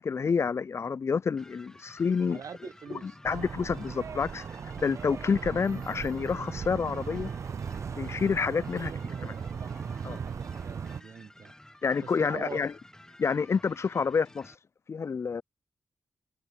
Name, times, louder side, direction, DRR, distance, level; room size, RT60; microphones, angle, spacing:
voice 1, 0.0-2.4 3.0-4.4 4.8-7.3 8.0-8.9 9.2-9.3 10.0-10.2 11.8-12.7 13.2-14.5 14.9-15.4, left 5 dB, 50° left, 0.4 m, -28 dB
sound 1, 1.4-14.6, left 1 dB, 10° left, 1.9 m, -53 dB
voice 2, 2.2-3.2 8.6-11.5 12.0-12.6, right 6 dB, 70° right, 4.8 m, -45 dB
sound 2, 3.2-11.0, right 6 dB, 55° right, 0.5 m, -37 dB
cardioid pair, 70°, 6 cm